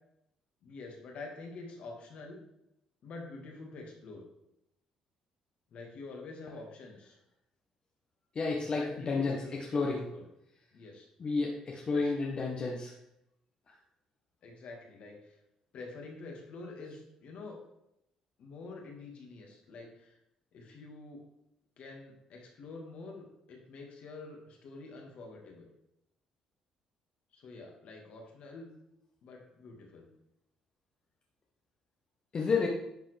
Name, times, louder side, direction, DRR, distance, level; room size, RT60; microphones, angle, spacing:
voice 1, 0.6-2.4 3.0-4.2 5.7-7.2 8.6-10.2 10.7-11.1 11.9-12.1 14.4-15.4 15.7-17.6 18.4-20.2 20.5-21.2 21.8-25.7 27.3-28.7 29.2-30.1, left 3 dB, 65° left, 1 dB, 1.9 m, -47 dB
voice 2, 8.3-9.4 9.7-10.0 11.2-12.9 13.7-13.8 32.3-32.7, left 4 dB, 45° left, -1 dB, 1.1 m, -31 dB
10.5 x 4.1 x 3.4 m, 0.82 s
supercardioid pair, 60°, 2 cm